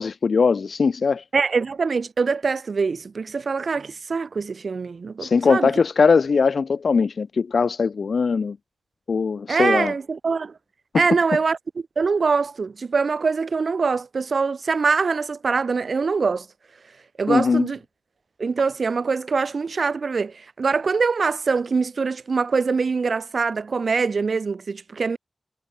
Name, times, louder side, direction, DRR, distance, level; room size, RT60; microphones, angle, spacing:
voice 1, 0.0-1.2 5.2-8.6 9.1-9.9 17.3-17.7, left 5 dB, 80° left, 0.9 m, -20 dB
voice 2, 1.3-5.7 9.5-10.5 10.9-11.6 12.0-16.5 17.2-17.8 18.4-25.2, right 4 dB, 75° right, 3.5 m, -23 dB
cardioid pair, 45°, 0 cm